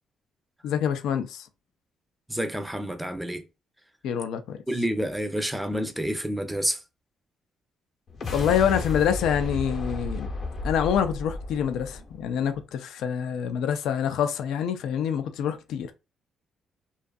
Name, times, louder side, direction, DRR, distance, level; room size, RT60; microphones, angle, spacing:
voice 1, 0.6-1.5 4.0-4.6 8.3-10.3 10.6-15.9, left 8 dB, 80° left, 0.3 m, -26 dB
voice 2, 2.3-3.4 4.7-6.8, equal, 5° right, 0.5 m, -29 dB
sound 1, 8.1-12.6, left 2 dB, 50° left, 0.8 m, -33 dB
2.6 x 2.3 x 2.2 m
cardioid pair, 105°, 0 cm